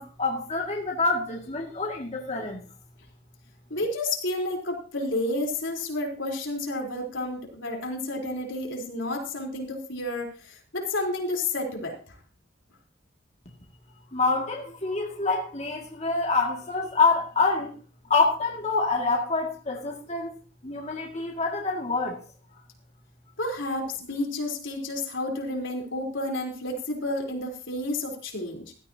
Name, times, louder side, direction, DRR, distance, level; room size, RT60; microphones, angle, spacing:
voice 1, 0.0-2.6 14.1-17.8 18.1-20.3 20.6-22.2, left 3 dB, 35° left, -1 dB, 2.2 m, -26 dB
voice 2, 3.7-12.2 23.4-28.7, left 2 dB, 75° left, 0 dB, 4.0 m, -31 dB
16.0 x 13.5 x 2.9 m, 0.39 s
head